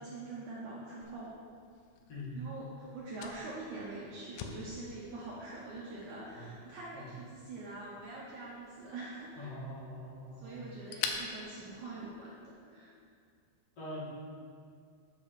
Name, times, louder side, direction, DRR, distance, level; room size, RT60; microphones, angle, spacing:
voice 1, 0.0-1.3 2.3-9.5 10.4-12.9, right 2 dB, 70° right, -6 dB, 1.9 m, -44 dB
Fire, 1.0-12.5, left 6 dB, 80° left, 2.7 m, -47 dB
voice 2, 2.1-2.4 6.3-6.6 6.9-7.1 9.4-10.7 13.8-14.1, left 1 dB, 40° left, -9 dB, 2.7 m, -43 dB
7.6 x 7.2 x 5.0 m, 2.2 s
omnidirectional pair, 4.9 m